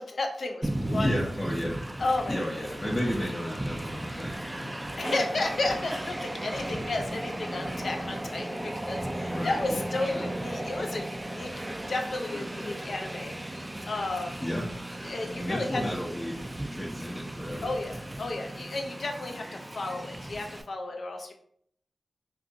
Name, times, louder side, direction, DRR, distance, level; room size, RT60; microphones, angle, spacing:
voice 1, 0.0-1.1 2.0-2.4 5.0-11.5 11.9-14.4 15.0-15.8 17.6-21.3, left 2 dB, 70° left, 3 dB, 0.5 m, -32 dB
Train, 0.6-20.6, right 1 dB, 20° right, 0.3 m, -36 dB
voice 2, 0.9-2.0 2.3-4.8 9.3-10.3 14.4-14.7 15.4-16.4 16.7-17.7, equal, 25° left, -4 dB, 0.6 m, -33 dB
2.4 x 2.3 x 3.8 m, 0.68 s
cardioid pair, 40°, 0 cm